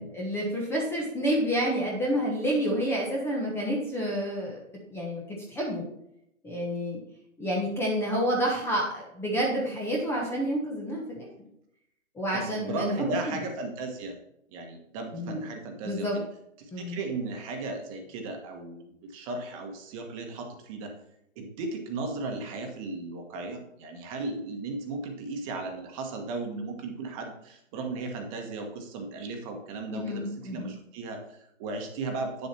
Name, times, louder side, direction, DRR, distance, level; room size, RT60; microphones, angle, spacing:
voice 1, 0.0-4.6 4.9-5.8 6.4-7.0 7.4-11.3 12.1-13.4 15.1-15.4 15.8-16.2 16.7-17.0 29.9-30.8, equal, 5° left, -3 dB, 1.1 m, -29 dB
voice 2, 12.3-14.1 14.5-16.2 16.6-20.9 21.3-32.5, right 3 dB, 25° right, 3 dB, 1.4 m, -36 dB
9.4 x 7.2 x 4.3 m, 0.80 s
hypercardioid pair, 145°, 39 cm